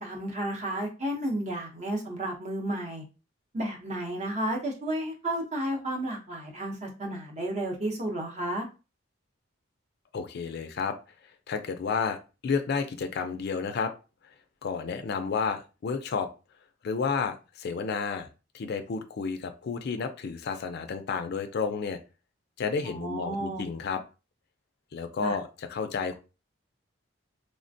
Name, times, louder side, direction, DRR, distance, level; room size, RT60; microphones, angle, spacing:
voice 1, 0.0-3.0 3.5-8.7 22.8-23.7 25.2-25.4, right 1 dB, 40° right, 1 dB, 0.7 m, -32 dB
voice 2, 10.1-11.0 11.5-13.9 14.6-16.3 16.8-18.3 18.5-22.0 22.6-24.0 24.9-26.1, left 5 dB, 60° left, 7 dB, 0.4 m, -31 dB
3.2 x 2.1 x 2.6 m, 0.31 s
head